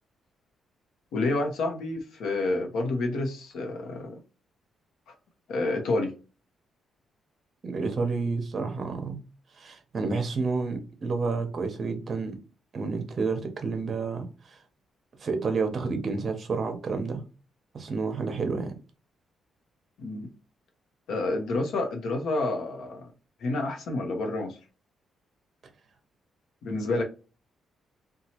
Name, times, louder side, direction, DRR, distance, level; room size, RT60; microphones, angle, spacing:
voice 1, 1.1-4.1 5.5-6.1 20.0-20.3 21.1-23.1 23.4-24.6 26.6-27.0, left 2 dB, 80° left, 3 dB, 0.8 m, -29 dB
voice 2, 7.6-9.2 9.5-12.4 12.7-14.6 15.2-17.2 17.7-18.8, right 4 dB, 35° right, 6 dB, 0.7 m, -30 dB
2.9 x 2.3 x 2.8 m, 0.34 s
cardioid pair, 155°, 0 cm